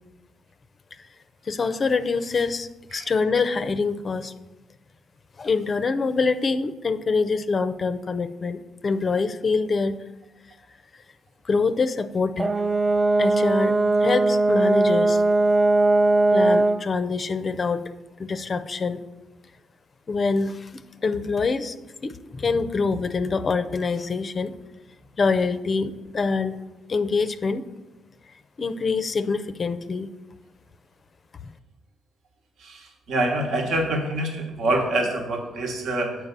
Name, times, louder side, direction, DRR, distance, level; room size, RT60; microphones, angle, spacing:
voice 1, 1.5-4.3 5.4-10.0 11.4-12.5 13.2-15.2 16.3-17.9 18.2-19.0 20.1-20.7 21.0-21.8 22.0-24.5 25.2-26.6 26.9-27.6 28.6-30.1, left 4 dB, 40° left, 11 dB, 0.5 m, -25 dB
Brass instrument, 12.4-16.9, right 2 dB, 25° right, 0.4 m, -19 dB
voice 2, 33.1-36.2, right 1 dB, 70° right, 2 dB, 1.2 m, -25 dB
7.3 x 4.6 x 6.7 m, 1.0 s
cardioid pair, 90°, 0 cm